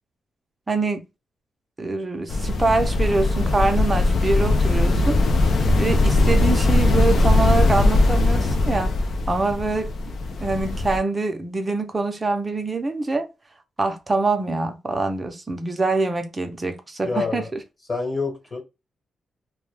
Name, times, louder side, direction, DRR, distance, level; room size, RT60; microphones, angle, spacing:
voice 1, 0.7-1.0 1.8-5.2 5.8-8.9 9.3-9.9 10.4-13.3 13.8-17.6, right 3 dB, 20° right, 0.5 m, -24 dB
sound 1, 2.3-11.0, left 2 dB, 55° left, 0.4 m, -20 dB
voice 2, 17.0-17.5 17.9-18.6, left 4 dB, 30° left, 1.1 m, -27 dB
2.2 x 2.1 x 3.1 m
wide cardioid pair, 145°, 0 cm